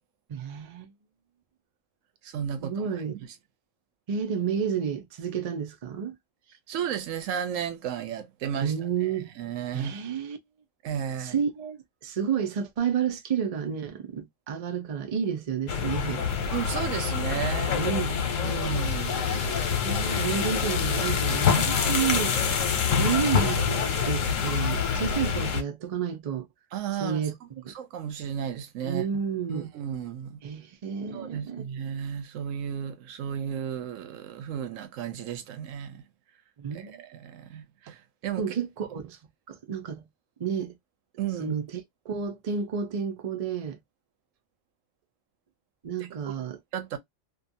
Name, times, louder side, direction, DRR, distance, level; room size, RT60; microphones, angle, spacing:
voice 1, 0.3-0.9 2.6-3.1 4.1-6.2 8.6-9.3 9.7-10.4 11.2-16.3 17.7-18.2 19.8-22.4 23.0-26.5 27.0-27.7 28.8-29.7 30.4-31.7 36.6-37.0 38.4-39.2 39.5-40.0 40.4-40.7 41.4-43.8 45.8-46.6, right 7 dB, 45° right, 0.5 m, -30 dB
voice 2, 2.2-2.9 3.2-3.3 6.7-8.7 9.4-9.9 10.8-11.4 16.5-17.8 18.4-19.3 26.7-27.2 27.7-29.1 29.5-30.4 31.1-36.0 36.7-38.4 41.2-41.6 46.0-46.1 46.7-47.0, right 8 dB, 85° right, 1.0 m, -33 dB
sound 1, 15.7-25.6, left 6 dB, 90° left, 1.1 m, -26 dB
2.6 x 2.4 x 2.6 m
omnidirectional pair, 1.3 m